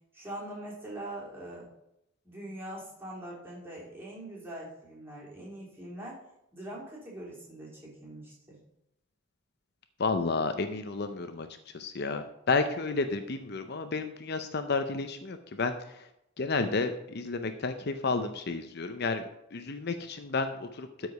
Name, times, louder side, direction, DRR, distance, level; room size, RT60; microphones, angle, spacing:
voice 1, 0.1-1.7 2.2-6.2 6.5-8.6, right 1 dB, 10° right, -5 dB, 3.5 m, -42 dB
voice 2, 10.0-11.5 11.7-16.1 16.4-21.1, left 3 dB, 55° left, 8 dB, 0.6 m, -31 dB
13.0 x 4.9 x 5.4 m, 0.81 s
head